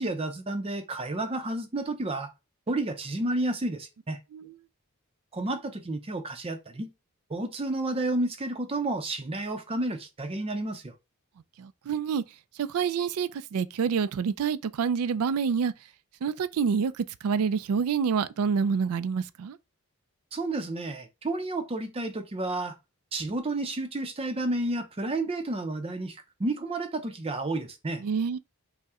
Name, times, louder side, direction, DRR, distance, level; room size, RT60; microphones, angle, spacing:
voice 1, 0.0-2.3 2.7-4.2 5.3-6.9 7.3-10.9 20.3-22.8 23.1-28.0, right 2 dB, 25° right, 0.5 m, -31 dB
voice 2, 11.6-12.2 12.6-15.7 16.2-19.6 28.0-28.4, right 6 dB, 75° right, 0.3 m, -27 dB
5.4 x 2.1 x 3.5 m
head